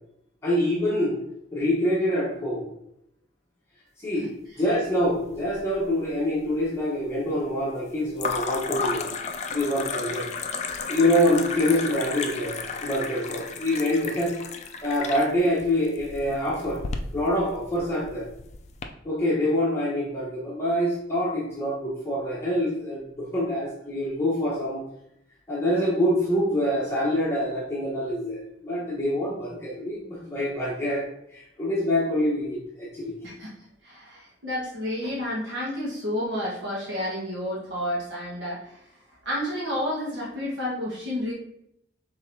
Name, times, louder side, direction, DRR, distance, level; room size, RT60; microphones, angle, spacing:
voice 1, 0.4-1.1 1.5-2.6 4.0-4.3 4.6-9.1 9.5-10.3 10.9-12.5 12.8-14.3 14.8-16.8 17.1-18.2 19.0-24.8 25.5-31.0 31.3-33.1, left 1 dB, 15° left, -7 dB, 1.0 m, -25 dB
sound 1, 5.0-5.8 6.1-6.7 8.2-18.9, left 4 dB, 40° left, 0.4 m, -33 dB
voice 2, 33.2-33.6 33.8-38.9 39.2-41.3, left 1 dB, 70° right, -6 dB, 1.4 m, -30 dB
5.2 x 3.8 x 2.7 m, 0.77 s
head